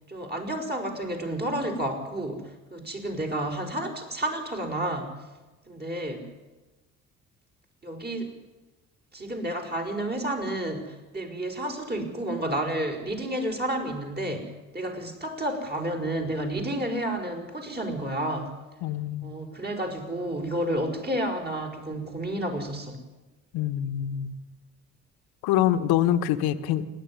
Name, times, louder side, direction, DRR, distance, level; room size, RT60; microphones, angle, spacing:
voice 1, 0.1-5.2 5.7-6.3 7.8-8.3 9.1-18.6 19.2-23.0, right 1 dB, 25° right, 3 dB, 5.0 m, -31 dB
voice 2, 18.8-19.4 23.5-24.4 25.4-26.9, left 11 dB, 65° left, 11 dB, 1.3 m, -25 dB
28.5 x 11.0 x 9.8 m, 1.2 s
figure-of-eight pair, 45°, 40 cm